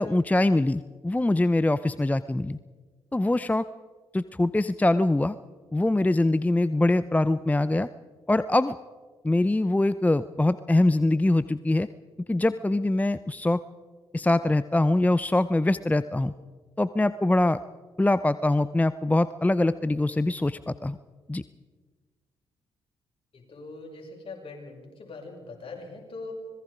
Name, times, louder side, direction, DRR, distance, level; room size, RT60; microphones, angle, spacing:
voice 1, 0.0-2.6 3.1-3.6 4.1-5.4 5.7-7.9 8.3-8.8 9.2-11.9 12.3-13.6 14.1-16.3 16.8-17.6 18.0-21.0 21.3-21.4, left 2 dB, 15° left, 15 dB, 0.7 m, -23 dB
voice 2, 23.3-26.3, left 3 dB, 50° left, 0 dB, 6.4 m, -42 dB
25.5 x 20.5 x 5.1 m, 1.4 s
hypercardioid pair, 40°, 12 cm